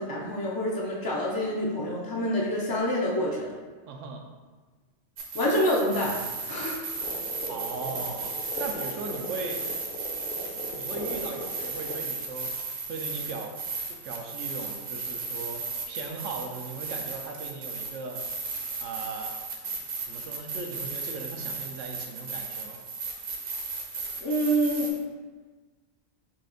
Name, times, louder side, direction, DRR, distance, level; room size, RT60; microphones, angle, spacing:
voice 1, 0.0-3.5 5.3-6.2 6.5-6.8 24.2-24.9, equal, 35° left, -4 dB, 0.3 m, -27 dB
voice 2, 3.9-4.2 7.5-8.3 8.6-9.6 10.7-13.5 13.9-18.2 18.8-19.3 20.0-22.8, right 4 dB, 85° right, 2 dB, 0.9 m, -38 dB
sound 1, 5.2-24.9, right 4 dB, 50° right, 0.8 m, -35 dB
sound 2, 7.0-12.0, left 1 dB, 55° left, 0.8 m, -40 dB
5.7 x 2.4 x 3.8 m, 1.4 s
omnidirectional pair, 1.2 m